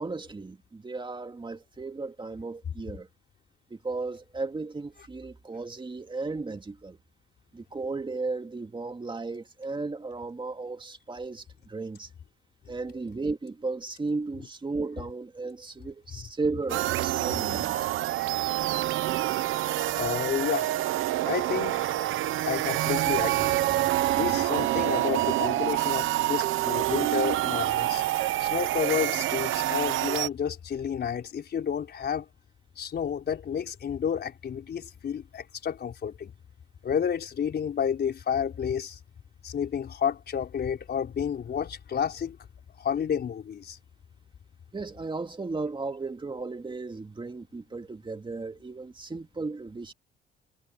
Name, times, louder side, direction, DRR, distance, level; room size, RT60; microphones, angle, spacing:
voice 1, 0.0-3.1 3.7-7.0 7.5-12.1 12.7-17.9 44.7-49.9, right 3 dB, 25° right, 2.1 m, -35 dB
sound 1, 16.7-30.3, right 15 dB, 85° right, 0.9 m, -27 dB
voice 2, 20.0-20.7 21.3-21.9 22.4-23.6 24.1-28.0 28.4-32.2 32.8-36.3 36.8-39.0 39.4-42.4 42.8-43.8, left 8 dB, 55° left, 4.5 m, -30 dB
cardioid pair, 90°, 20 cm